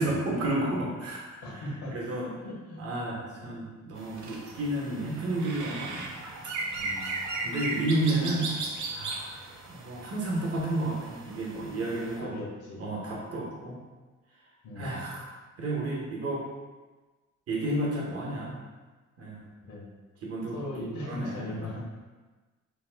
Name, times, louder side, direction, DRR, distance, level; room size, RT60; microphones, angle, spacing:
voice 1, 0.0-1.6 1.9-2.3 2.8-6.1 7.4-8.5 8.9-9.4 9.7-12.3 12.8-13.8 14.8-16.4 17.5-18.6 19.2-19.4 20.2-20.6 21.1-21.6, right 1 dB, 50° right, -3 dB, 0.9 m, -31 dB
voice 2, 1.4-2.8 6.8-7.2 12.2-12.8 14.6-15.1 19.6-19.9 20.5-21.9, left 1 dB, 80° left, -4 dB, 1.0 m, -39 dB
sound 1, 4.0-12.2, right 3 dB, 75° right, 0.6 m, -37 dB
2.8 x 2.1 x 3.4 m, 1.3 s
cardioid pair, 90°, 30 cm